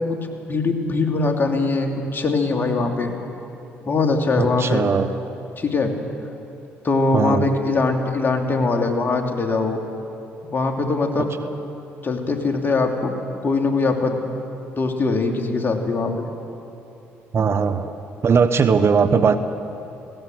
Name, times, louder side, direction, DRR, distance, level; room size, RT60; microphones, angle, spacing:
voice 1, 0.1-3.1 3.8-4.9 5.6-5.9 6.8-9.8 10.5-11.3 12.0-13.2 13.4-14.1 14.8-16.2, left 3 dB, 35° left, 3 dB, 2.9 m, -22 dB
voice 2, 4.4-5.1 7.1-7.4 11.4-11.5 17.3-17.9 18.2-19.4, right 5 dB, 45° right, 10 dB, 1.1 m, -19 dB
19.5 x 17.5 x 7.9 m, 2.9 s
hypercardioid pair, 55°, 6 cm